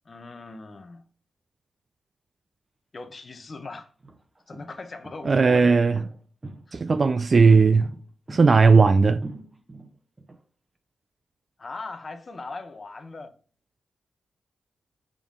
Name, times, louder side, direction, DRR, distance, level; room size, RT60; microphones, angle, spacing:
voice 1, 0.1-1.0 2.9-3.9 4.5-5.8 6.7-6.8 11.6-13.3, left 3 dB, 45° left, 0.8 m, -39 dB
sound 1, 3.1-3.2 3.9-10.4, right 2 dB, 25° right, 1.0 m, -42 dB
voice 2, 5.2-6.0 6.7-7.9 8.3-9.2, right 4 dB, 45° right, 0.3 m, -17 dB
6.8 x 3.7 x 3.7 m
cardioid pair, 70°, 0 cm